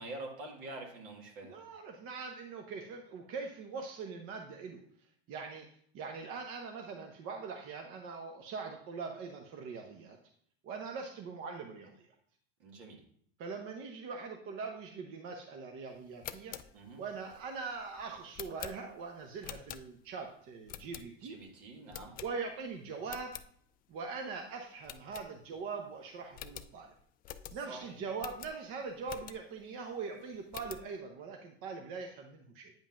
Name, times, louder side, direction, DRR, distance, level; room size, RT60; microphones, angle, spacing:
voice 1, 0.0-1.6 12.6-13.0 16.7-17.0 21.2-22.1 27.5-28.0, right 2 dB, 70° right, 1 dB, 2.0 m, -46 dB
voice 2, 1.4-4.8 5.3-5.7 5.9-10.2 10.6-12.1 13.4-16.6 17.0-21.4 22.2-23.3 23.9-26.9 27.5-32.7, right 4 dB, 45° right, 3 dB, 0.8 m, -42 dB
sound 1, 16.1-20.2 20.7-21.4 21.9-22.7 23.0-23.5 23.9-24.0 24.3-24.4 24.8-25.7 26.0-26.1 26.3-29.6 30.1-30.9, left 11 dB, 30° left, 0.4 m, -48 dB
9.0 x 5.3 x 2.5 m, 0.63 s
supercardioid pair, 105°, 29 cm